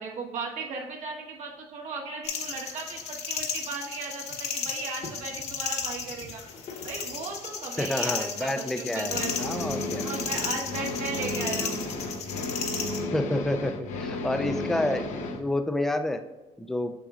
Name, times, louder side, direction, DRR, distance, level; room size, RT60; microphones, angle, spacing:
voice 1, 0.0-6.4 6.8-9.3 10.0-11.9 12.3-12.6, right 4 dB, 65° right, -1 dB, 1.4 m, -36 dB
sound 1, 2.2-13.0, left 6 dB, 55° left, 1.0 m, -34 dB
voice 2, 7.8-10.0 13.1-16.2 16.6-16.9, left 1 dB, 5° left, 7 dB, 0.4 m, -29 dB
sound 2, 9.0-15.4, left 2 dB, 75° left, 0.7 m, -33 dB
6.7 x 6.1 x 2.5 m, 1.2 s
cardioid pair, 115°, 13 cm